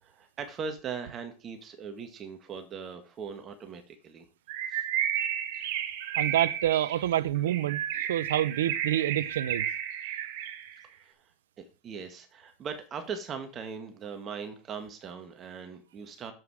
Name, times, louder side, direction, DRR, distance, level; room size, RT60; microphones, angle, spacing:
voice 1, 0.0-4.3 4.7-4.9 11.0-11.3 11.6-16.3, right 6 dB, 35° right, 1.7 m, -40 dB
Bird, 4.5-10.8, right 10 dB, 65° right, 1.3 m, -32 dB
voice 2, 6.2-9.7, right 12 dB, 85° right, 0.6 m, -27 dB
7.8 x 7.7 x 4.8 m
hypercardioid pair, 105°, 0 cm